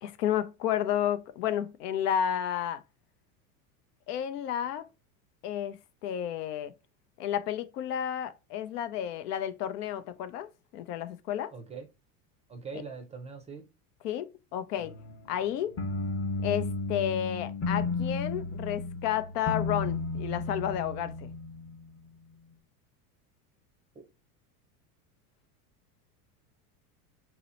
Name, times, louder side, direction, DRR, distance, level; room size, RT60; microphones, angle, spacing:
voice 1, 0.0-2.8 4.1-4.9 5.4-6.7 7.2-11.5 14.0-14.9 15.3-15.8 16.4-21.3, left 10 dB, 90° left, 0.5 m, -31 dB
voice 2, 11.5-11.9 12.5-13.7, right 5 dB, 15° right, 0.4 m, -42 dB
sound 1, 14.8-22.1, left 3 dB, 30° left, 0.7 m, -33 dB
2.8 x 2.0 x 3.9 m
supercardioid pair, 105°, 46 cm